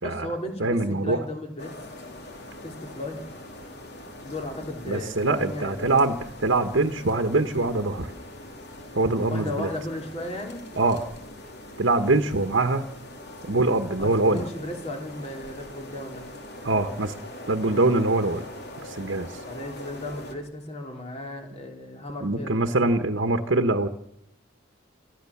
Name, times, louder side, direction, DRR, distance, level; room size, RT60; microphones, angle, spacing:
voice 1, 0.0-1.7 2.6-3.2 4.2-6.2 9.3-10.6 14.0-16.4 19.4-22.7, left 1 dB, 30° left, 2 dB, 3.3 m, -35 dB
voice 2, 0.6-1.2 4.9-6.2 6.4-8.1 8.9-9.7 10.8-11.0 11.8-12.9 13.5-14.4 16.6-17.1 17.5-18.4 18.8-19.4 22.2-23.9, right 2 dB, 70° right, 6 dB, 1.2 m, -23 dB
sound 1, 1.6-20.3, left 1 dB, 55° left, 3.5 m, -42 dB
28.0 x 13.5 x 7.2 m, 0.81 s
head